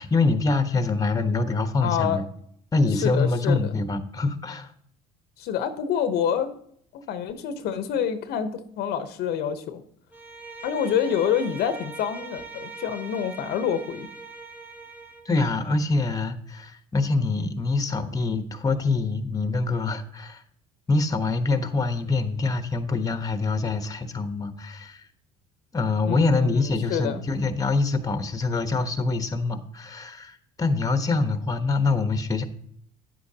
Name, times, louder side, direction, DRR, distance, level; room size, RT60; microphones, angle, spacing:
voice 1, 0.0-2.2 2.7-4.7 15.2-20.4 20.9-25.0 25.7-32.4, left 3 dB, 20° left, 9 dB, 1.0 m, -25 dB
voice 2, 1.8-2.2 3.0-3.6 5.4-6.5 6.9-9.8 10.6-14.1 26.1-26.6 26.9-27.2, left 8 dB, 65° left, 10 dB, 0.9 m, -27 dB
Bowed string instrument, 10.1-15.3, right 3 dB, 10° right, 1.0 m, -41 dB
9.8 x 8.3 x 2.8 m, 0.65 s
supercardioid pair, 85°, 18 cm